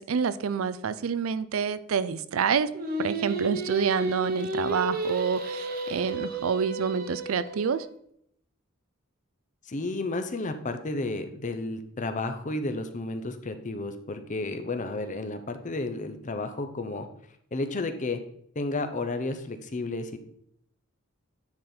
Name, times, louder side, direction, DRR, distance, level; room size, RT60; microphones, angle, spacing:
voice 1, 0.0-2.7 3.0-7.9, right 6 dB, 85° right, 15 dB, 0.4 m, -28 dB
Singing, 2.7-7.9, right 2 dB, 45° right, 1.0 m, -32 dB
voice 2, 9.7-17.1 17.5-18.2 18.6-20.2, left 2 dB, 35° left, 8 dB, 0.7 m, -32 dB
9.5 x 4.0 x 4.3 m, 0.70 s
head